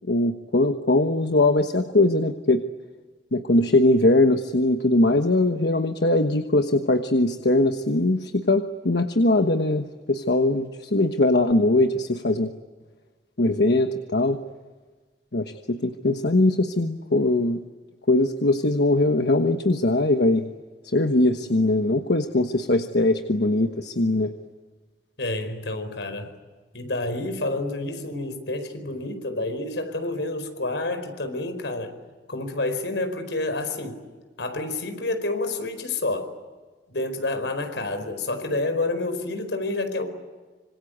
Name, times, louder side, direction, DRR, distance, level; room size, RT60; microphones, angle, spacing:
voice 1, 0.1-2.6 3.3-12.5 13.4-14.4 15.3-17.6 18.1-20.5 20.9-24.3, left 2 dB, 65° left, 6 dB, 1.3 m, -21 dB
voice 2, 25.2-26.3 26.7-31.9 32.3-34.0 34.4-36.3 36.9-40.0, left 2 dB, 85° left, 8 dB, 4.8 m, -29 dB
26.0 x 26.0 x 8.0 m, 1.4 s
head